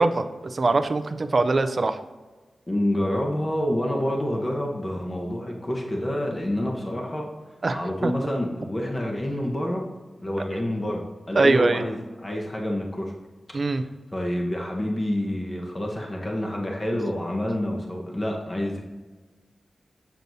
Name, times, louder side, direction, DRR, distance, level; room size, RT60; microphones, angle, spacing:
voice 1, 0.0-2.0 7.6-8.1 11.3-11.8 13.5-13.8, right 3 dB, 45° right, 9 dB, 0.5 m, -22 dB
voice 2, 2.7-7.2 7.7-9.9 10.2-13.1 13.7-18.8, left 1 dB, 25° left, -1 dB, 1.2 m, -28 dB
7.8 x 6.8 x 2.7 m, 1.3 s
wide cardioid pair, 95°, 0 cm